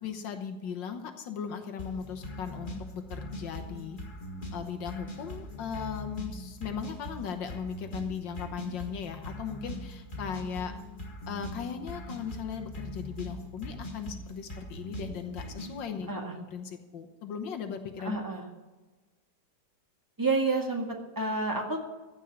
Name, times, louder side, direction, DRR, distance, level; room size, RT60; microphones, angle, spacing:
voice 1, 0.0-4.0 4.5-10.7 11.3-16.1 16.4-18.2, left 7 dB, 85° left, 6 dB, 1.8 m, -38 dB
sound 1, 1.8-15.8, left 1 dB, 30° left, 1.9 m, -41 dB
voice 2, 18.0-18.5 20.2-21.8, right 3 dB, 10° right, 1 dB, 1.8 m, -29 dB
15.0 x 5.5 x 9.2 m, 1.2 s
omnidirectional pair, 1.9 m